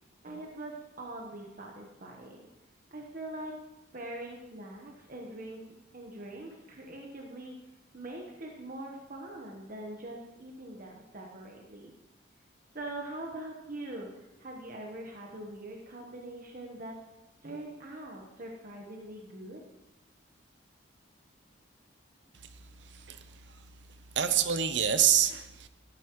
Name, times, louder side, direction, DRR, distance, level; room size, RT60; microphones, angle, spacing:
voice 1, 0.2-2.5 2.9-3.5 3.9-5.6 5.9-7.5 7.9-11.9 12.7-16.9 17.4-19.6, right 1 dB, 45° right, 0 dB, 1.2 m, -43 dB
voice 2, 22.8-23.3 24.2-25.7, right 9 dB, 65° right, 10 dB, 0.7 m, -26 dB
13.0 x 12.5 x 3.1 m, 0.97 s
head